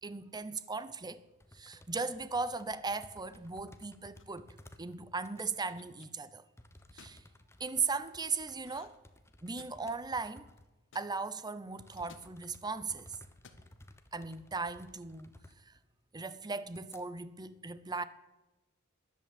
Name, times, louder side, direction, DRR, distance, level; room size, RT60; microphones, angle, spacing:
voice 1, 0.0-1.2 1.5-4.5 4.8-6.4 6.9-7.2 7.6-8.9 9.4-10.5 10.9-13.2 14.1-15.3 15.7-15.8 16.1-18.0, right 4 dB, 20° right, 0.8 m, -37 dB
sound 1, 1.4-4.9 5.2-5.5 6.6-10.8 11.1-11.2 11.8-15.8 16.2-16.3 16.7-17.0, left 1 dB, 10° left, 1.1 m, -58 dB
sound 2, 4.2-4.5 5.4-6.1 6.8-7.2 8.6-9.1 9.3-10.0 10.9-11.1 12.0-12.3 13.3-13.7, left 5 dB, 60° left, 1.6 m, -57 dB
13.5 x 11.5 x 9.4 m
head